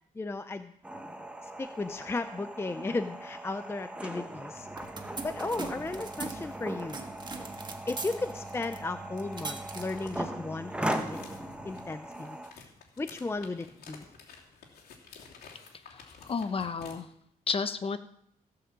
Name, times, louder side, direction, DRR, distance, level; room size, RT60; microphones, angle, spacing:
voice 1, 0.2-0.7 1.4-4.7 5.2-7.1 7.9-11.2 11.6-12.7 13.0-14.1, left 3 dB, 15° left, 10 dB, 0.5 m, -35 dB
sound 1, 0.8-12.5, right 1 dB, 5° right, 1.1 m, -39 dB
sound 2, 4.5-11.9, right 3 dB, 30° right, 1.5 m, -42 dB
sound 3, 9.6-17.0, left 5 dB, 85° left, 2.9 m, -52 dB
voice 2, 15.8-17.1 17.5-18.0, left 5 dB, 35° left, 11 dB, 0.9 m, -32 dB
16.5 x 5.9 x 7.4 m, 0.75 s
cardioid pair, 125°, 16 cm